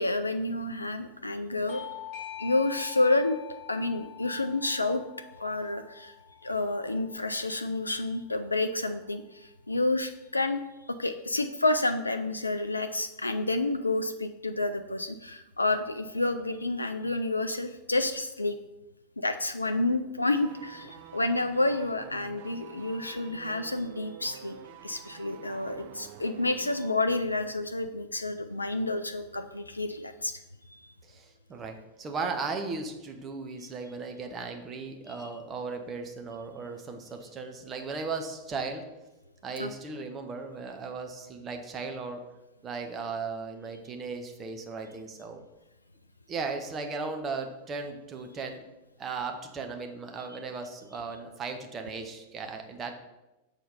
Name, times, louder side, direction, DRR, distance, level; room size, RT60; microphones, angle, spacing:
voice 1, 0.0-1.9 2.4-3.4 3.7-5.0 5.4-6.1 6.4-10.6 10.9-18.6 19.2-24.6 24.8-30.4 35.2-35.3 39.6-39.7, left 2 dB, 80° left, 8 dB, 0.3 m, -29 dB
Bell / Doorbell, 1.7-6.9, left 11 dB, 45° left, 1.1 m, -45 dB
sound 1, 20.3-27.0 27.3-27.4, right 9 dB, 50° right, 0.4 m, -48 dB
voice 2, 31.0-38.8 39.4-42.2 42.6-45.4 46.3-48.6 49.0-52.9, right 4 dB, 25° right, 4 dB, 0.9 m, -36 dB
6.6 x 4.0 x 5.5 m, 1.0 s
figure-of-eight pair, 90°, 0 cm